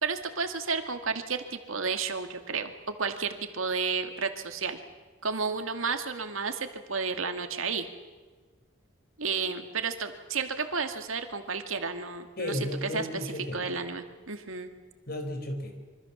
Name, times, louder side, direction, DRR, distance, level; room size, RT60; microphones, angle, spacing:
voice 1, 0.0-4.8 5.2-7.9 9.2-13.1 13.5-14.7, right 5 dB, 80° right, 7 dB, 2.2 m, -32 dB
voice 2, 12.4-13.6 15.1-15.8, left 1 dB, 50° left, 6 dB, 4.6 m, -34 dB
26.0 x 24.5 x 7.3 m, 1.3 s
head